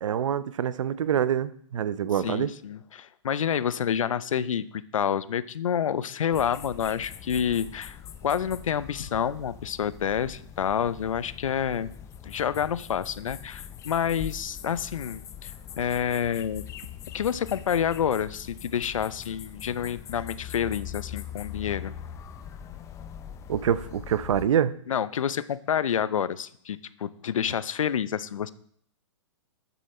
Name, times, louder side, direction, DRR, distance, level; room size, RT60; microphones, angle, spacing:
voice 1, 0.0-2.5 23.5-24.8, right 9 dB, 70° right, 16 dB, 0.7 m, -26 dB
voice 2, 2.2-11.9 12.2-16.6 17.1-21.9 24.9-28.5, left 8 dB, 80° left, 16 dB, 0.7 m, -28 dB
sound 1, 6.3-24.5, left 9 dB, 15° left, 0.7 m, -42 dB
13.0 x 7.0 x 4.3 m, 0.63 s
hypercardioid pair, 135°, 17 cm